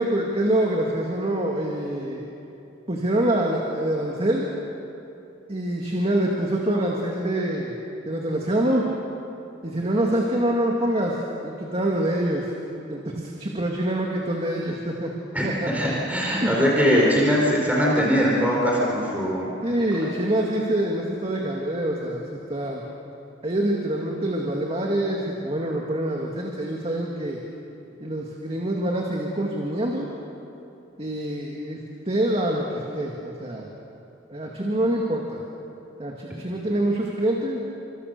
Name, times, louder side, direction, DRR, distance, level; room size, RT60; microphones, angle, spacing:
voice 1, 0.0-2.2 2.9-4.5 5.5-7.8 8.1-8.9 9.6-11.2 11.4-12.5 12.9-15.1 15.4-15.9 16.4-16.6 19.6-22.2 22.5-22.8 23.4-27.4 28.0-30.1 31.0-31.8 32.1-33.7 34.3-35.4 36.0-37.6, right 1 dB, 30° right, -1 dB, 2.3 m, -25 dB
voice 2, 15.3-19.5, equal, 10° right, -4 dB, 4.3 m, -21 dB
29.5 x 25.5 x 6.8 m, 2.8 s
head